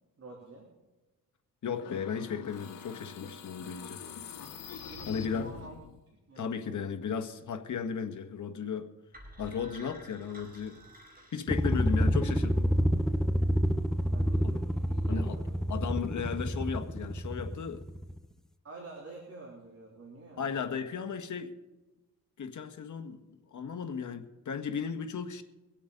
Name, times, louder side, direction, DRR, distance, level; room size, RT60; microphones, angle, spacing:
voice 1, 0.2-0.7 4.9-5.7 6.1-6.9 14.0-15.7 16.2-16.5 18.6-20.7, right 3 dB, 45° right, -2 dB, 3.4 m, -49 dB
voice 2, 1.6-4.0 5.1-5.5 6.4-8.9 9.4-10.8 11.3-12.6 14.4-14.5 15.1-15.3 15.7-17.8 20.4-21.5 22.4-23.2 23.5-25.4, left 6 dB, 60° left, 5 dB, 1.6 m, -35 dB
sound 1, 1.8-6.0, left 6 dB, 85° left, 1.5 m, -44 dB
sound 2, 9.1-12.2, right 1 dB, 25° right, 4.9 m, -51 dB
sound 3, 11.5-18.2, equal, ahead, 0.6 m, -28 dB
24.0 x 8.5 x 4.0 m, 1.1 s
cardioid pair, 85°, 33 cm